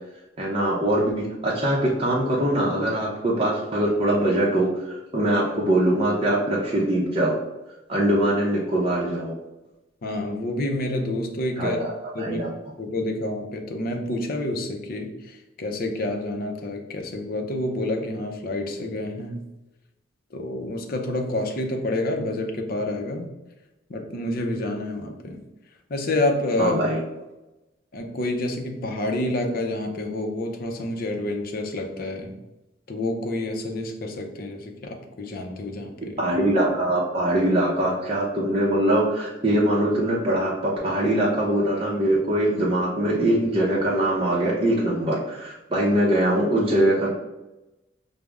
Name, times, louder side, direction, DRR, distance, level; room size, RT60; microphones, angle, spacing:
voice 1, 0.4-4.7 5.1-7.3 7.9-9.3 11.6-12.5 26.6-27.0 36.2-47.1, right 1 dB, 30° right, -5 dB, 0.6 m, -22 dB
voice 2, 10.0-11.8 12.1-12.4 12.8-19.4 20.3-23.3 23.9-25.4 25.9-26.8 27.9-32.3 32.9-36.2, left 1 dB, 50° left, 3 dB, 0.5 m, -28 dB
4.9 x 2.0 x 3.4 m, 1.0 s
head